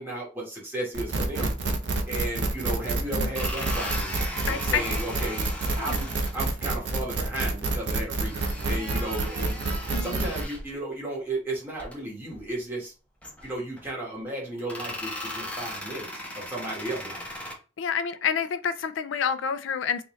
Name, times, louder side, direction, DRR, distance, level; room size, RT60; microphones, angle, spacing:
voice 1, 0.0-1.5 2.1-4.1 4.5-5.5 5.8-6.1 6.3-9.6 10.0-12.9 13.4-16.1 16.3-17.2, right 1 dB, 10° right, 1.4 m, -34 dB
sound 1, 0.9-10.4, right 3 dB, 60° right, 0.6 m, -28 dB
sound 2, 2.5-2.6 3.2-6.4 8.2-10.8 11.7-12.0 12.3-12.5 13.2-13.8 14.6-17.5, left 1 dB, 5° left, 0.9 m, -37 dB
voice 2, 4.5-4.8 5.8-6.0 9.9-10.3 17.8-20.0, left 7 dB, 85° left, 0.4 m, -28 dB
3.7 x 2.6 x 3.1 m
head